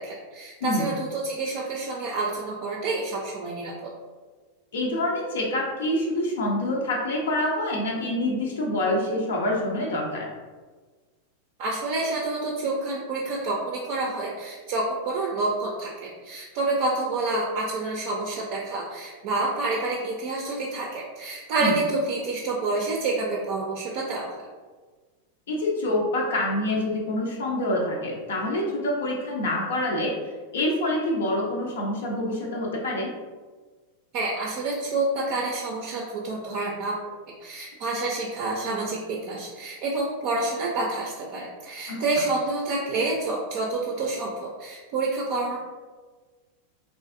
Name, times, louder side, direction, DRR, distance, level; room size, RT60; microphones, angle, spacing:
voice 1, 0.0-3.9 11.6-24.5 34.1-36.9 37.4-45.6, right 2 dB, 45° right, -2 dB, 0.4 m, -28 dB
voice 2, 0.6-0.9 4.7-10.3 21.6-21.7 25.5-30.1 30.5-33.1 41.9-42.0, left 1 dB, 60° left, -2 dB, 0.5 m, -26 dB
3.2 x 2.4 x 2.4 m, 1.4 s
figure-of-eight pair, 90°, 0 cm